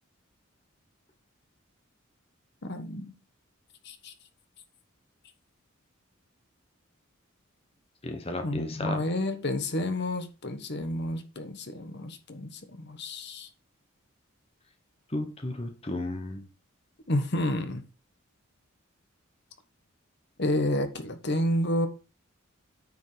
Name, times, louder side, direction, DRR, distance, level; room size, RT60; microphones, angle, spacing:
voice 1, 2.6-3.1 3.8-4.1 8.4-13.5 17.1-17.8 20.4-21.9, left 1 dB, 50° left, 1.2 m, -30 dB
voice 2, 8.0-9.0 15.1-16.5, left 1 dB, 30° left, 1.1 m, -34 dB
9.4 x 5.2 x 5.0 m
head